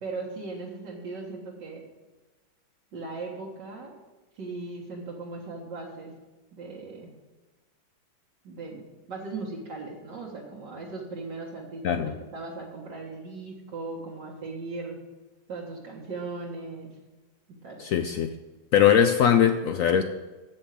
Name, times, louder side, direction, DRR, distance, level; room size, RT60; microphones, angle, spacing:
voice 1, 0.0-1.8 2.9-3.9 4.3-6.1 6.5-7.1 8.4-8.8 9.1-15.0 15.5-17.0 17.6-17.8, right 3 dB, 70° right, -3 dB, 2.1 m, -38 dB
voice 2, 17.8-18.3 18.7-20.0, left 9 dB, 80° left, 8 dB, 0.7 m, -21 dB
7.8 x 7.2 x 7.5 m, 1.2 s
omnidirectional pair, 2.0 m